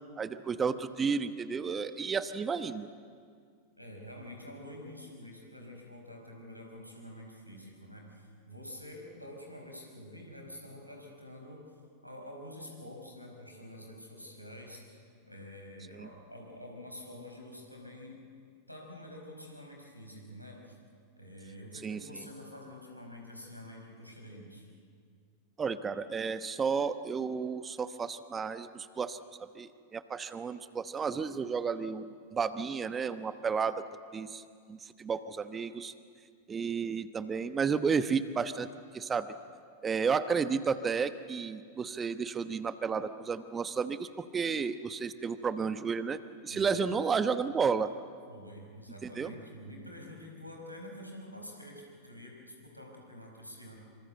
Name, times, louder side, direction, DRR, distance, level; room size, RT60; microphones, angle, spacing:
voice 1, 0.2-2.9 15.9-16.1 21.8-22.0 25.6-33.8 34.1-34.4 34.7-35.9 36.5-38.7 38.9-39.3 39.8-46.2 46.4-47.9 49.2-49.3, right 5 dB, 20° right, 12 dB, 1.0 m, -32 dB
voice 2, 3.8-11.7 12.0-18.2 18.7-20.8 21.2-24.7 46.5-46.8 48.3-53.8, left 1 dB, 90° left, 0 dB, 5.2 m, -47 dB
25.5 x 25.5 x 8.0 m, 2.1 s
figure-of-eight pair, 90°, 0 cm